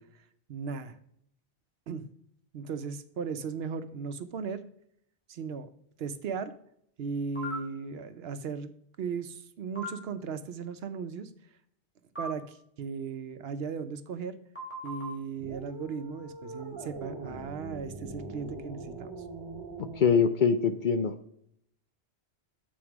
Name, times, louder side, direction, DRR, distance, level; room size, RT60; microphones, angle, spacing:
voice 1, 0.5-1.0 1.9-2.1 2.5-4.6 5.3-5.7 6.0-6.5 7.0-8.7 9.0-11.3 12.2-14.4 14.8-19.1, right 5 dB, 70° right, 11 dB, 0.8 m, -36 dB
sound 1, 7.4-7.6 9.8-9.9 12.2-12.3 14.6-15.1, right 1 dB, 10° left, 3.2 m, -36 dB
sound 2, 15.4-20.2, right 3 dB, 25° right, 1.0 m, -42 dB
voice 2, 20.0-21.1, left 6 dB, 55° left, 9 dB, 0.6 m, -23 dB
7.8 x 4.3 x 4.6 m, 0.70 s
omnidirectional pair, 1.1 m